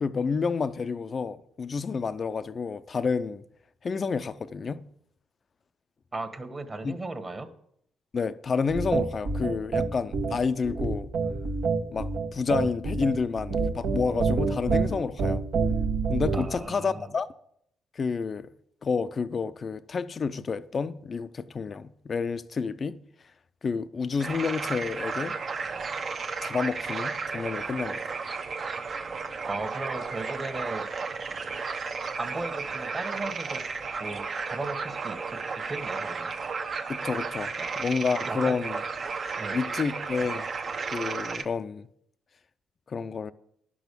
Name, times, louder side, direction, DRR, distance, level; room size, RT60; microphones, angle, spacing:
voice 1, 0.0-3.4 3.8-4.8 6.8-7.0 8.1-11.1 11.9-15.4 16.1-17.3 18.0-18.5 18.8-23.0 23.6-25.4 26.4-28.0 36.9-37.5 37.8-38.8 39.5-40.5 40.9-41.9 42.9-43.3, left 5 dB, 40° left, 0.5 m, -29 dB
voice 2, 6.1-7.5 16.3-17.1 29.5-30.9 32.2-33.6 34.0-35.4 35.7-36.3 37.6-37.7 38.2-38.7 39.4-39.6, right 2 dB, 25° right, 1.4 m, -36 dB
sound 1, 8.7-16.6, right 4 dB, 75° right, 1.4 m, -27 dB
sound 2, 24.2-41.4, right 4 dB, 50° right, 0.9 m, -33 dB
11.5 x 6.2 x 6.8 m
cardioid pair, 90°, 0 cm